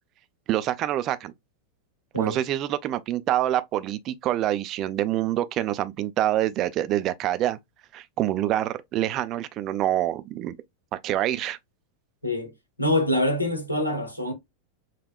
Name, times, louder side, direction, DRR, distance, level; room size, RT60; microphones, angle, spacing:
voice 1, 0.5-1.3 2.2-7.6 7.9-10.6 11.0-11.6, right 13 dB, 35° right, 0.3 m, -26 dB
voice 2, 12.2-12.5 12.8-14.3, left 1 dB, 85° left, 1.0 m, -25 dB
5.3 x 2.1 x 2.3 m
figure-of-eight pair, 90°, 0 cm